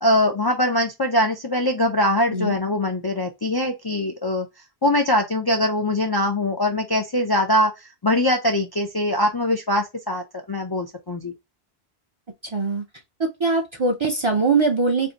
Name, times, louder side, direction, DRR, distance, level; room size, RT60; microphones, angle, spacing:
voice 1, 0.0-4.5 4.8-11.3, left 1 dB, 35° left, 0.4 m, -22 dB
voice 2, 12.5-12.8 13.2-15.1, right 3 dB, 35° right, 0.5 m, -22 dB
2.7 x 2.6 x 3.8 m
omnidirectional pair, 1.0 m